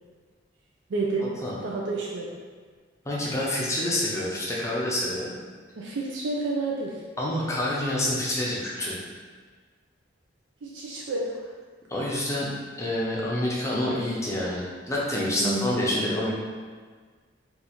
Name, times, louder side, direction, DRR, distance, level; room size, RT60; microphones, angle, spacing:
voice 1, 0.9-1.3 1.6-2.3 5.8-7.0 10.6-11.4 15.4-15.8, right 3 dB, 85° right, -3 dB, 0.4 m, -29 dB
voice 2, 3.0-5.3 7.2-9.0 11.9-12.5 12.8-16.3, left 1 dB, 15° left, -5 dB, 0.6 m, -27 dB
2.9 x 2.4 x 4.1 m, 1.5 s
head